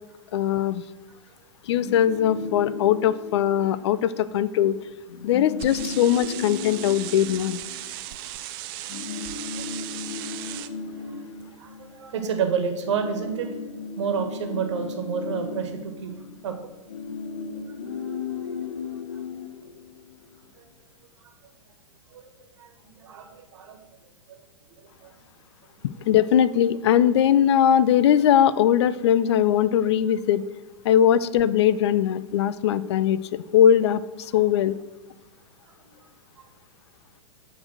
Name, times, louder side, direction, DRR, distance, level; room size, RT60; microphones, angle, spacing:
voice 1, 0.3-0.8 1.7-4.7 5.2-7.6 26.1-30.4 30.8-34.8, left 10 dB, 60° left, 17 dB, 0.4 m, -20 dB
sound 1, 1.7-4.2 4.5-4.7 5.0-8.4 8.9-12.4 12.7-20.3, left 5 dB, 80° left, 0.8 m, -36 dB
sound 2, 5.6-10.7, right 14 dB, 45° right, 0.5 m, -37 dB
voice 2, 11.6-13.5 14.0-16.1 16.4-16.6 19.1-19.2 20.6-20.7 22.1-23.8 24.3-24.4 25.0-25.1 25.9-26.1 35.8-35.9, right 6 dB, 65° right, 5 dB, 1.4 m, -30 dB
8.7 x 4.0 x 6.2 m, 1.1 s
hypercardioid pair, 110°, 16 cm